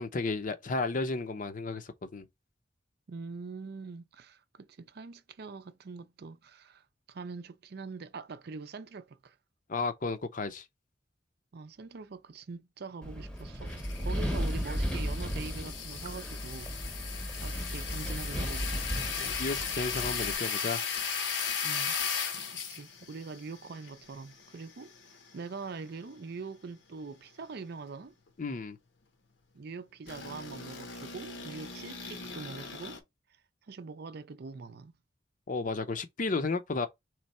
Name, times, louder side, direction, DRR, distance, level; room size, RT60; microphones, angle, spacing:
voice 1, 0.0-2.3 9.7-10.6 19.2-20.8 28.4-28.8 35.5-36.9, left 3 dB, 45° left, 0.6 m, -33 dB
voice 2, 3.1-9.4 11.5-16.8 17.4-18.9 21.6-22.2 22.7-24.9 25.3-28.1 29.5-33.0 33.7-34.9, right 4 dB, 60° right, 0.5 m, -43 dB
Wind, 13.0-20.4, equal, 5° left, 0.8 m, -35 dB
sound 1, 13.7-25.4 25.8-25.9 30.1-33.0, left 6 dB, 80° left, 0.9 m, -37 dB
sound 2, 16.0-16.1 16.6-16.7 17.3-17.4 18.0-18.1 18.6-18.8 19.3-19.4 20.0-20.2 20.6-20.7 21.3-21.4, right 2 dB, 20° right, 1.0 m, -48 dB
3.5 x 3.2 x 4.2 m
head